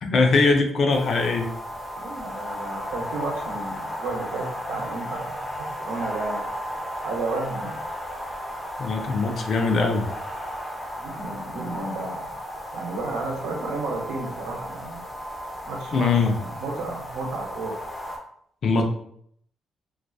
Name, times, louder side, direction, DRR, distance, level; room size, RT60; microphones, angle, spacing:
voice 1, 0.0-1.5 8.8-10.1 15.9-16.4 18.6-18.8, left 4 dB, 55° left, 3 dB, 0.4 m, -21 dB
sound 1, 0.9-18.2, equal, 5° left, 0.6 m, -34 dB
voice 2, 1.9-6.5 7.0-7.8 11.0-12.2 12.7-15.0 15.6-17.8, right 3 dB, 85° right, 0 dB, 0.6 m, -32 dB
2.4 x 2.3 x 2.3 m, 0.66 s
cardioid pair, 90°, 0 cm